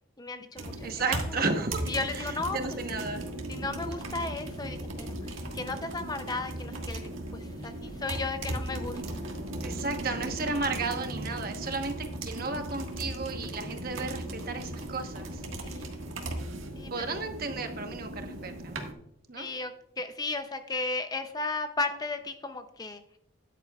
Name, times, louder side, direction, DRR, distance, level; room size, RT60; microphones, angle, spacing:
voice 1, 0.2-1.2 1.9-2.6 3.5-9.0 15.6-15.9 16.8-17.1 19.4-19.7 20.0-23.0, left 3 dB, 20° left, 8 dB, 0.5 m, -35 dB
sound 1, 0.6-18.9, right 1 dB, 80° right, 1.6 m, -37 dB
voice 2, 0.8-1.8 2.1-3.2 9.6-15.4 16.9-18.8 19.3-19.5, right 4 dB, 45° right, 6 dB, 1.1 m, -33 dB
13.5 x 10.0 x 2.3 m, 0.73 s
head